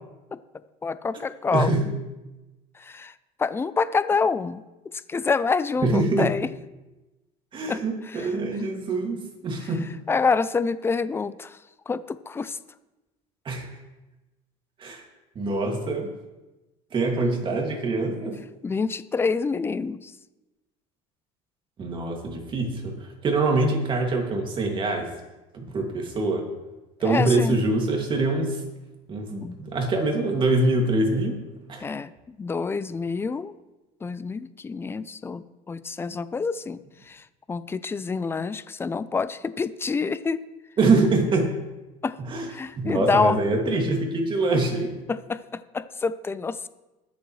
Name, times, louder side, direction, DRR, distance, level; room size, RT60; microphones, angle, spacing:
voice 1, 0.8-1.7 2.7-3.1 3.4-4.6 5.1-6.5 7.7-8.3 10.1-11.6 11.9-12.6 18.6-20.1 27.0-27.6 29.4-29.6 31.8-33.5 34.0-36.8 37.0-40.4 42.0-42.2 42.5-43.4 45.1-46.7, left 4 dB, 15° left, 15 dB, 0.4 m, -27 dB
voice 2, 1.5-1.8 5.8-6.3 7.5-9.9 13.4-13.7 14.8-15.0 15.4-16.1 16.9-18.4 21.8-25.1 25.5-26.5 27.0-28.6 29.1-31.4 31.7-31.9 40.8-41.6 42.2-42.5 42.8-45.0, right 2 dB, 35° right, 2 dB, 2.3 m, -24 dB
20.5 x 7.1 x 3.2 m, 1.1 s
supercardioid pair, 115°, 15 cm